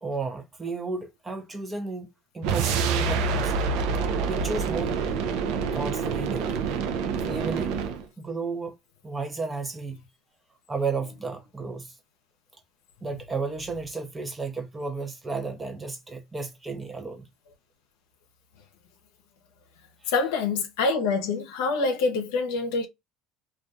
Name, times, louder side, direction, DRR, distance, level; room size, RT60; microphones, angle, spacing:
voice 1, 0.0-3.5 4.3-4.9 5.7-6.6 7.2-7.8 8.2-8.7 9.0-10.0 10.7-12.0 13.0-17.3 20.0-20.1, right 4 dB, 20° right, 0.5 m, -33 dB
sound 1, 2.4-8.0, right 5 dB, 75° right, 0.4 m, -27 dB
voice 2, 20.1-22.9, left 4 dB, 85° left, 0.6 m, -26 dB
2.3 x 2.2 x 2.6 m
supercardioid pair, 85°, 0 cm